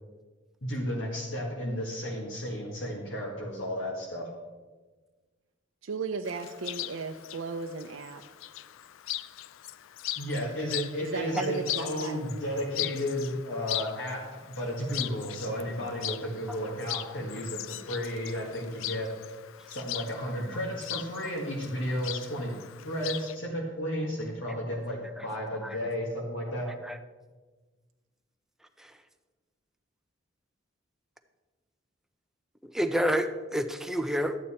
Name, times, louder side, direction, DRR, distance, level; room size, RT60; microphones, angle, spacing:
voice 1, 0.6-4.3 10.2-14.2 14.5-17.6 17.8-19.1 19.7-22.5 22.8-26.7, equal, 70° left, -1 dB, 1.6 m, -33 dB
voice 2, 5.8-8.2 11.0-12.2, right 4 dB, 80° right, 4 dB, 0.5 m, -35 dB
Chirp tweet, 6.2-23.4, left 14 dB, 85° left, 0.4 m, -39 dB
voice 3, 26.7-27.0 28.8-28.9 32.6-34.4, equal, ahead, 7 dB, 0.5 m, -30 dB
12.0 x 8.7 x 4.3 m, 1.3 s
head